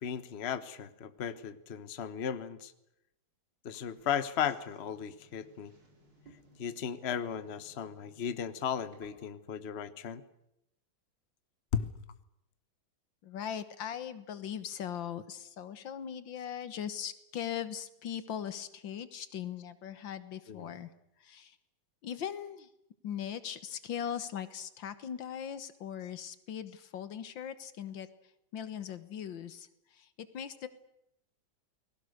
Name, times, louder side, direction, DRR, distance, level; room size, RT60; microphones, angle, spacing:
voice 1, 0.0-2.7 3.6-5.7 6.6-10.2 11.7-11.9 20.5-20.7, left 8 dB, 40° left, 12 dB, 1.2 m, -35 dB
sound 1, 3.7-9.5, right 1 dB, 60° right, 5.5 m, -62 dB
voice 2, 13.2-20.9 21.2-21.6 22.0-22.7 23.0-28.1 28.5-30.7, left 9 dB, 75° left, 13 dB, 2.0 m, -40 dB
29.5 x 20.5 x 6.6 m, 0.82 s
omnidirectional pair, 2.1 m